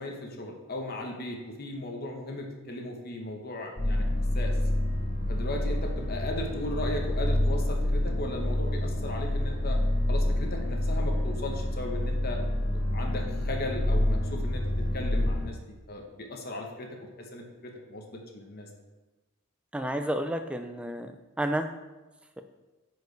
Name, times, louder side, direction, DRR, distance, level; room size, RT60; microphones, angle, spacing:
voice 1, 0.0-4.1 4.3-4.5 5.3-9.8 10.1-12.4 12.7-14.6 14.9-16.9 17.2-18.0 18.3-18.7, left 1 dB, 45° left, 2 dB, 0.9 m, -37 dB
sound 1, 3.8-15.5, left 1 dB, 65° left, 1.9 m, -28 dB
voice 2, 19.7-21.1 21.4-21.7, right 1 dB, 5° right, 7 dB, 0.3 m, -30 dB
9.4 x 4.6 x 3.2 m, 1.1 s
head